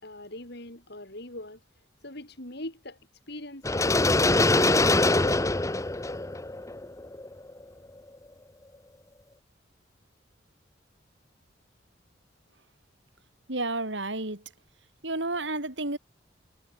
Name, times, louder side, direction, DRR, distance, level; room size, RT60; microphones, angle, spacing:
voice 1, 0.0-1.6 2.0-3.0 3.3-5.6, left 1 dB, 60° left, 7.5 m, -42 dB
sound 1, 3.6-7.6, left 2 dB, 15° left, 0.9 m, -23 dB
voice 2, 13.5-14.4 15.0-16.0, right 2 dB, 70° right, 5.2 m, -31 dB
head